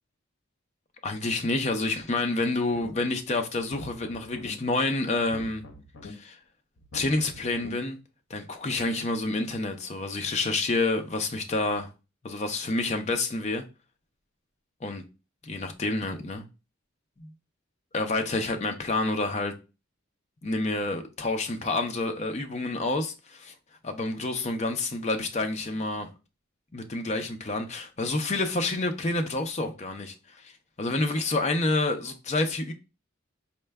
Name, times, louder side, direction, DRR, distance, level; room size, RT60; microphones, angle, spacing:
voice 1, 1.0-5.6 6.0-6.4 6.9-8.0 8.3-11.9 12.2-13.6 14.8-15.0 15.4-16.4 17.2-17.3 17.9-19.5 20.4-23.5 23.8-26.1 26.7-30.5 30.8-32.7, left 2 dB, 35° left, 0.5 m, -28 dB
sound 1, 2.7-3.2 3.6-4.5 5.2-6.1 6.8-7.7, left 2 dB, 65° left, 0.8 m, -45 dB
4.3 x 2.2 x 3.3 m
head